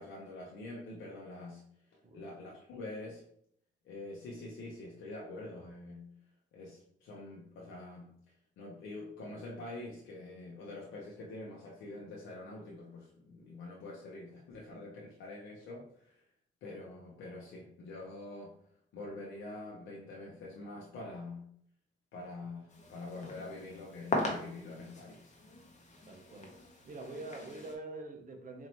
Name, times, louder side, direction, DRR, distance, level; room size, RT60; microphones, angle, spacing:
voice 1, 0.0-1.6 2.1-3.2 3.8-6.1 6.5-8.1 8.6-16.2 16.6-18.5 18.9-21.5 22.1-25.3, left 2 dB, 75° left, -3 dB, 0.8 m, -45 dB
sound 1, 22.7-27.8, left 2 dB, 35° left, 1.0 m, -40 dB
voice 2, 26.1-26.5 26.8-28.7, right 2 dB, 40° right, 3 dB, 0.9 m, -45 dB
4.4 x 2.7 x 3.0 m, 0.68 s
cardioid pair, 90°, 20 cm